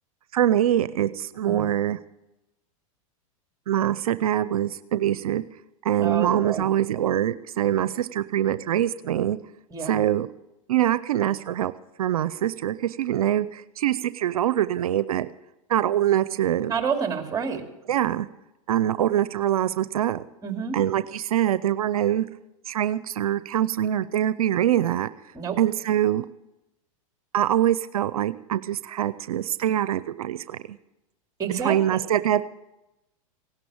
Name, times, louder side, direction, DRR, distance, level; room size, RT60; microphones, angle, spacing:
voice 1, 0.3-2.0 3.7-5.4 5.8-9.4 9.8-10.3 10.7-11.7 12.0-15.3 15.7-16.7 17.9-18.3 18.7-20.2 20.7-22.3 22.6-25.1 25.6-26.2 27.3-30.8 31.6-32.4, right 11 dB, 90° right, 15 dB, 0.6 m, -24 dB
voice 2, 6.0-6.6 9.7-10.0 16.7-17.6 20.4-20.8 25.3-25.6 31.4-32.0, right 6 dB, 20° right, 4 dB, 2.7 m, -28 dB
17.0 x 11.5 x 7.1 m, 0.93 s
hypercardioid pair, 115°, 18 cm